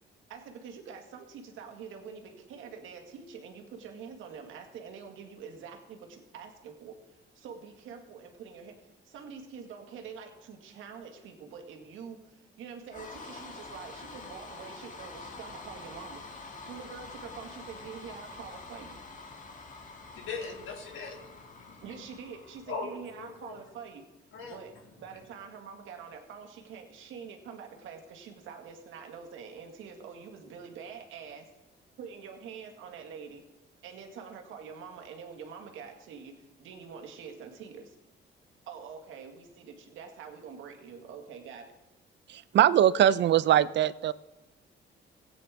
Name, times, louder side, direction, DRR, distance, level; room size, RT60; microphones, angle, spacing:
voice 1, 0.3-16.4 16.7-19.0 21.8-24.0 24.4-31.4 32.0-33.4 33.8-38.0 38.7-41.7, right 6 dB, 85° right, 3 dB, 1.8 m, -45 dB
sound 1, 12.9-23.2, left 3 dB, 40° left, 1.7 m, -46 dB
voice 2, 20.1-21.8 22.7-23.6 24.3-24.6, left 4 dB, 80° left, 2 dB, 2.3 m, -40 dB
voice 3, 42.3-44.1, right 11 dB, 65° right, 17 dB, 0.5 m, -22 dB
16.5 x 9.2 x 3.6 m, 1.1 s
cardioid pair, 90°, 20 cm